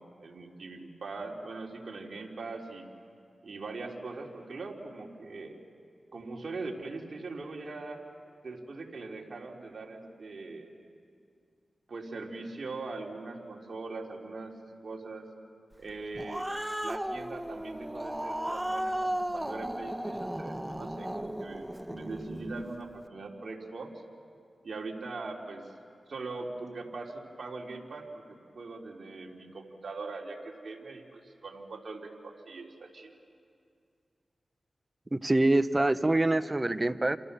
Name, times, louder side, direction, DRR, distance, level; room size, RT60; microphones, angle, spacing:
voice 1, 0.0-2.8 3.4-5.6 6.1-8.0 8.4-10.7 11.9-14.5 14.8-15.3 15.8-16.4 16.8-23.9 24.6-25.6 26.1-33.2, right 3 dB, 65° right, 0 dB, 3.7 m, -41 dB
Growling, 15.9-22.7, right 1 dB, 10° right, 1.2 m, -35 dB
voice 2, 35.1-37.2, right 2 dB, 30° right, 13 dB, 1.1 m, -25 dB
30.0 x 27.5 x 7.0 m, 2.4 s
cardioid pair, 45°, 0 cm